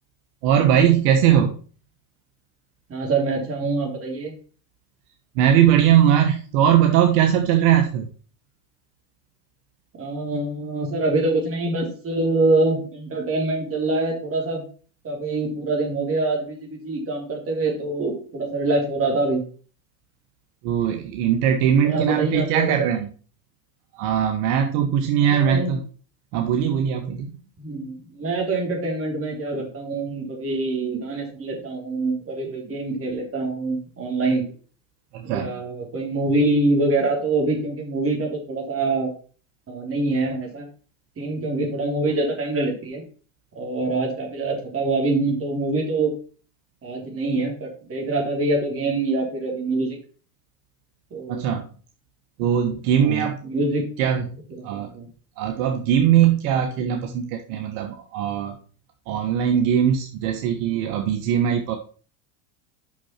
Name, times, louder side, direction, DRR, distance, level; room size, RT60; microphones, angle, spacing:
voice 1, 0.4-1.5 5.4-8.1 20.6-23.1 23.9-25.8 26.3-27.3 35.1-35.6 51.3-51.7 52.4-53.4 54.0-54.2 54.6-54.9 55.4-58.6 59.1-61.8, right 9 dB, 60° right, 5 dB, 1.3 m, -20 dB
voice 2, 2.9-4.3 10.0-14.6 15.0-19.4 21.8-22.8 25.2-25.7 27.6-34.4 35.2-39.1 39.7-40.7 41.2-43.0 43.6-46.1 46.8-50.0 51.1-51.4 53.0-53.9 54.5-55.1, right 2 dB, 25° right, 0 dB, 3.6 m, -25 dB
6.2 x 6.1 x 5.9 m, 0.41 s
supercardioid pair, 125°, 49 cm